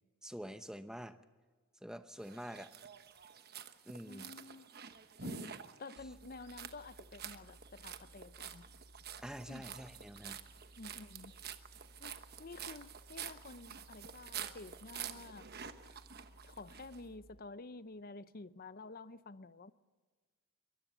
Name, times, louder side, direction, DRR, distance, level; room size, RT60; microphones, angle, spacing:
voice 1, 0.2-1.2 1.8-2.7 3.9-4.3 9.2-10.4, equal, 5° right, 0.8 m, -46 dB
sound 1, 2.2-17.0, right 7 dB, 45° right, 1.1 m, -49 dB
voice 2, 4.1-4.7 5.2-8.7 9.5-9.6 10.8-11.3 12.0-15.5 16.4-19.7, left 3 dB, 40° left, 0.7 m, -51 dB
sound 2, 6.0-17.4, equal, 75° right, 2.1 m, -61 dB
23.0 x 20.0 x 7.1 m
head